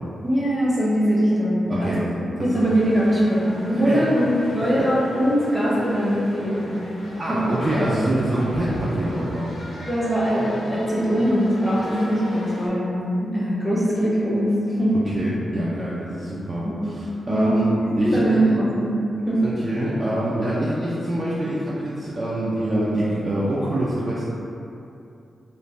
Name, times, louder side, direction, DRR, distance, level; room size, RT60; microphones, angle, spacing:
voice 1, 0.2-1.9 2.4-4.3 4.5-6.8 7.3-7.5 9.9-15.0 16.6-16.8 17.3-17.6 18.0-19.0 19.3-19.4, equal, 15° right, -8 dB, 0.9 m, -21 dB
voice 2, 1.7-2.7 3.8-4.9 7.2-9.6 14.9-17.7 18.0-18.5 19.4-24.3, right 1 dB, 45° right, -7 dB, 0.4 m, -25 dB
sound 1, 2.5-12.7, left 1 dB, 80° left, 0.5 m, -37 dB
2.5 x 2.1 x 3.1 m, 2.7 s
cardioid pair, 65°, 0 cm